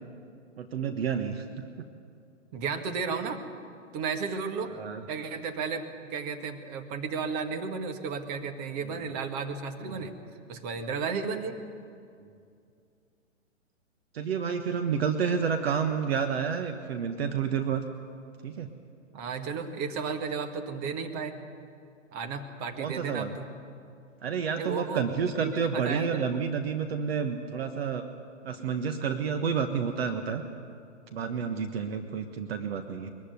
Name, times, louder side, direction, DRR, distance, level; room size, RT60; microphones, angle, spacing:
voice 1, 0.6-1.4 4.7-5.0 9.9-10.0 14.1-17.8 18.4-18.7 22.8-23.3 24.2-28.1 28.4-30.4 31.1-33.1, right 6 dB, 50° right, 6 dB, 1.4 m, -30 dB
voice 2, 2.5-3.4 3.9-4.7 5.1-10.1 10.5-11.6 19.1-21.3 22.1-23.5 24.6-26.3, right 5 dB, 30° right, 6 dB, 1.8 m, -33 dB
22.5 x 15.0 x 9.5 m, 2.4 s
hypercardioid pair, 135°, 38 cm